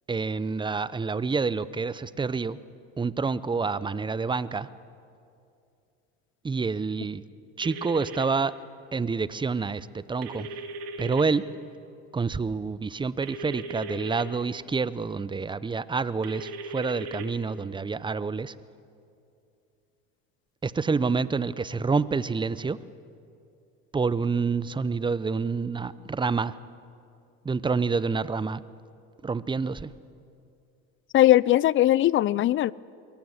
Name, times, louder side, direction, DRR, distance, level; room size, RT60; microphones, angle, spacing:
voice 1, 0.1-2.6 3.0-4.7 6.4-7.2 7.6-8.5 8.9-10.5 11.0-11.4 12.1-18.5 20.6-22.8 23.9-26.5 27.4-28.6 29.2-29.9, right 4 dB, 15° right, 17 dB, 0.7 m, -28 dB
sound 1, 7.6-8.2 10.2-11.2 13.2-14.2 16.2-17.3, right 2 dB, 90° right, 2.0 m, -38 dB
voice 2, 31.1-32.7, left 14 dB, 40° left, 23 dB, 0.5 m, -19 dB
22.5 x 17.0 x 8.0 m, 2.5 s
supercardioid pair, 85°, 30 cm